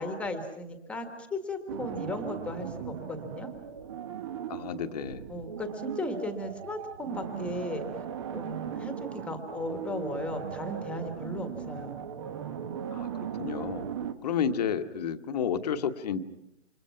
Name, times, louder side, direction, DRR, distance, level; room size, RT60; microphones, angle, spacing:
voice 1, 0.0-3.5 5.3-7.9 8.3-12.0, left 1 dB, 5° left, 6 dB, 1.6 m, -36 dB
sound 1, 1.7-14.1, right 8 dB, 25° right, 1.0 m, -38 dB
voice 2, 4.5-5.3 12.9-13.9 14.2-16.2, left 7 dB, 35° left, 8 dB, 1.4 m, -31 dB
29.5 x 27.0 x 5.8 m, 0.79 s
hypercardioid pair, 155°, 37 cm